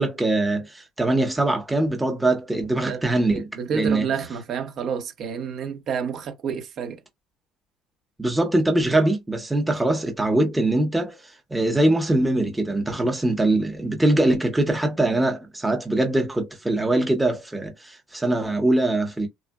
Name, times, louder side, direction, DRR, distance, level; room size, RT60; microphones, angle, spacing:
voice 1, 0.0-3.5 3.7-4.0 8.2-19.3, right 2 dB, 10° right, 0.9 m, -22 dB
voice 2, 3.3-7.0, right 6 dB, 55° right, 1.1 m, -29 dB
3.4 x 2.4 x 2.3 m
supercardioid pair, 95°, 0 cm